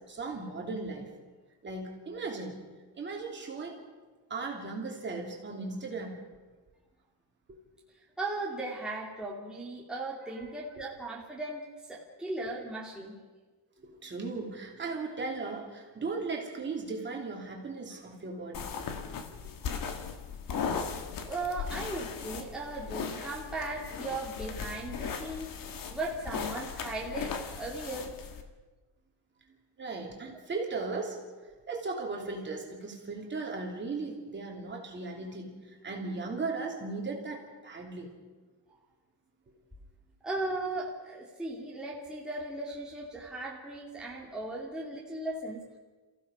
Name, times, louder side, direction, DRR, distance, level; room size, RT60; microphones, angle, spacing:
voice 1, 0.1-1.1 1.6-2.6 2.9-3.8 4.3-6.2 7.5-7.6 10.2-10.5 13.8-18.7 19.3-19.5 29.8-31.2 31.7-38.1, right 3 dB, 25° right, 0 dB, 3.2 m, -37 dB
voice 2, 8.2-13.2 21.2-25.5 25.9-28.1 40.2-45.8, right 2 dB, ahead, -5 dB, 2.8 m, -37 dB
sound 1, 18.5-28.4, left 6 dB, 50° left, 1.9 m, -37 dB
29.0 x 16.0 x 5.6 m, 1.3 s
cardioid pair, 170°, 42 cm